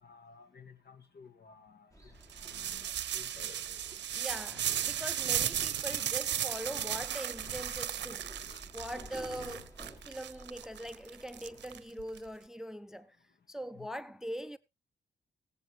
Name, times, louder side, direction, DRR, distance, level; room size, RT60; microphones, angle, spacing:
voice 1, 0.0-1.9 2.6-3.3 9.0-9.1 13.7-13.9, left 5 dB, 60° left, 2.1 m, -55 dB
sound 1, 1.9-11.8, equal, 15° left, 3.9 m, -54 dB
sound 2, 2.3-12.2, right 10 dB, 70° right, 0.7 m, -35 dB
Livestock farm animals working animals, 2.4-9.7, left 5 dB, 85° left, 2.9 m, -56 dB
voice 2, 4.1-8.3 8.7-13.2 13.5-14.6, equal, 5° right, 0.5 m, -42 dB
18.5 x 8.0 x 3.1 m
cardioid pair, 70°, 19 cm